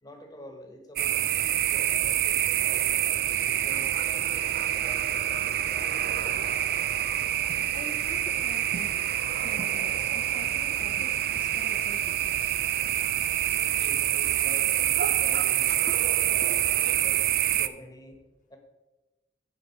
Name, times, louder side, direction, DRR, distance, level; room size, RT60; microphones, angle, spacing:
voice 1, 0.0-6.4 13.5-18.2 18.5-18.6, left 1 dB, 20° left, 3 dB, 1.4 m, -47 dB
sound 1, 1.0-17.7, right 11 dB, 60° right, 0.4 m, -26 dB
voice 2, 7.1-8.9 9.4-12.6 15.8-16.9, left 2 dB, 45° left, 8 dB, 0.8 m, -47 dB
8.4 x 5.8 x 5.8 m, 1.1 s
head